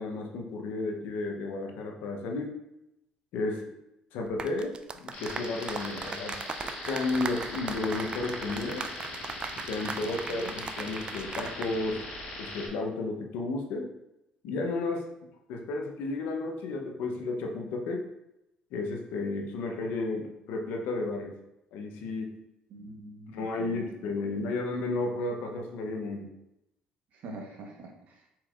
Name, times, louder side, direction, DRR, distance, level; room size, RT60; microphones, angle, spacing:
voice 1, 0.0-2.6 3.3-3.7 4.1-8.9 9.6-12.0 12.4-13.9 14.4-15.1 15.5-18.0 18.7-21.3 21.7-22.4 23.3-26.3, left 3 dB, 80° left, 2 dB, 0.7 m, -33 dB
sound 1, 4.3-11.8 12.0-12.2, right 4 dB, 35° right, 0.3 m, -38 dB
sound 2, 5.1-12.7, left 2 dB, 60° left, 1.3 m, -40 dB
voice 2, 10.0-10.6 22.7-23.9 27.1-28.2, right 3 dB, 65° right, 1 dB, 1.0 m, -44 dB
4.5 x 4.2 x 2.4 m, 0.87 s
supercardioid pair, 80°, 3 cm